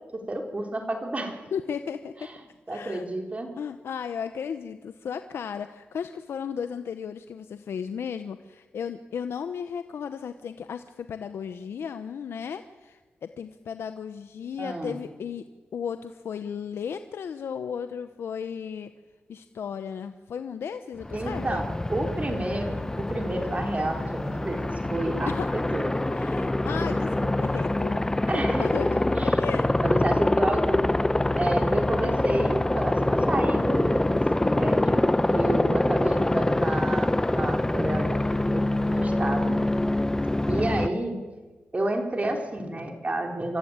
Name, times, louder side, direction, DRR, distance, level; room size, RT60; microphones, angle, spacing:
voice 1, 0.1-1.4 2.2-2.3 2.7-3.5 14.6-15.0 21.1-26.0 28.3-28.7 29.2-29.3 29.8-30.9 31.4-39.6 40.5-41.2 41.7-43.6, right 1 dB, 35° right, 3 dB, 4.0 m, -30 dB
voice 2, 1.5-2.1 2.7-3.1 3.6-15.4 15.7-18.9 19.3-21.6 25.3-25.5 26.1-29.7, left 7 dB, 80° left, 10 dB, 0.8 m, -35 dB
Aircraft, 21.0-40.9, left 1 dB, 15° left, 0.9 m, -25 dB
25.5 x 14.5 x 8.8 m, 1.3 s
cardioid pair, 60°, 4 cm